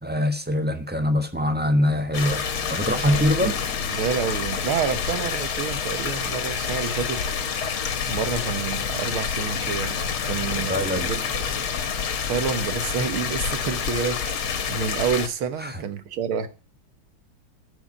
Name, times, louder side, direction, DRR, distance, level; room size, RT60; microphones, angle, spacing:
voice 1, 0.0-3.5 10.5-11.2 15.6-15.8, left 1 dB, 5° right, 8 dB, 0.8 m, -24 dB
sound 1, 2.1-15.3, left 7 dB, 90° left, 2.3 m, -28 dB
voice 2, 3.0-3.5 3.9-7.2 8.1-11.3 12.3-16.5, right 6 dB, 80° right, 10 dB, 2.1 m, -28 dB
13.0 x 5.9 x 8.5 m, 0.37 s
omnidirectional pair, 2.3 m